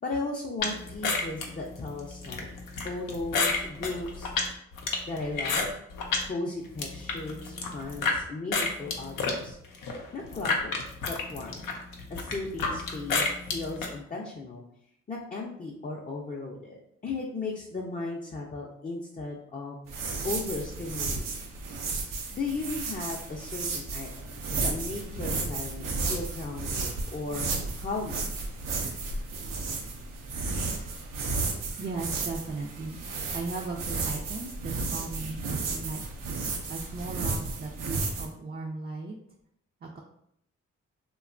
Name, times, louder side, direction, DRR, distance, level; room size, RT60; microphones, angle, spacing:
voice 1, 0.0-2.5 2.8-4.3 5.1-5.7 6.2-9.6 10.1-11.7 12.1-14.6 15.1-19.8 20.2-21.2 22.3-27.5 27.8-28.4, left 3 dB, 25° left, -2 dB, 0.5 m, -36 dB
sound 1, 0.6-6.3 6.6-8.2 8.5-13.9, left 4 dB, 80° left, 0.5 m, -30 dB
sound 2, 19.9-38.3, right 3 dB, 80° right, 0.5 m, -33 dB
voice 2, 31.8-33.1 33.3-36.0 36.4-39.2 39.8-40.0, right 3 dB, 30° right, -1 dB, 0.4 m, -37 dB
2.8 x 2.2 x 2.4 m, 0.73 s
supercardioid pair, 40°, 32 cm